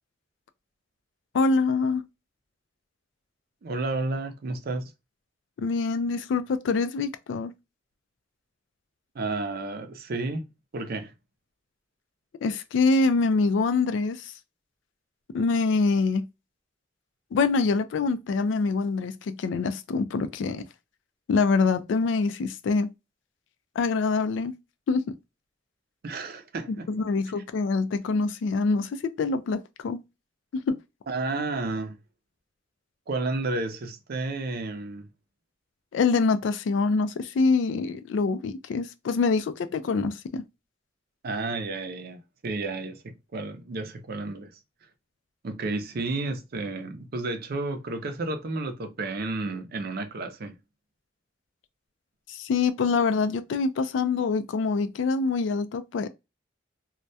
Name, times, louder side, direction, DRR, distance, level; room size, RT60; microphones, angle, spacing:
voice 1, 1.3-2.0 5.6-7.5 12.4-14.3 15.3-16.3 17.3-20.7 21.3-22.9 23.8-24.5 24.9-25.2 26.9-30.0 30.5-30.8 35.9-40.5 52.3-56.1, left 4 dB, 70° left, 0.3 m, -25 dB
voice 2, 3.6-4.8 9.1-10.4 10.7-11.1 26.0-26.9 31.1-32.0 33.1-35.1 41.2-44.6 45.4-50.5, right 2 dB, 55° right, 0.5 m, -31 dB
2.2 x 2.1 x 2.6 m
head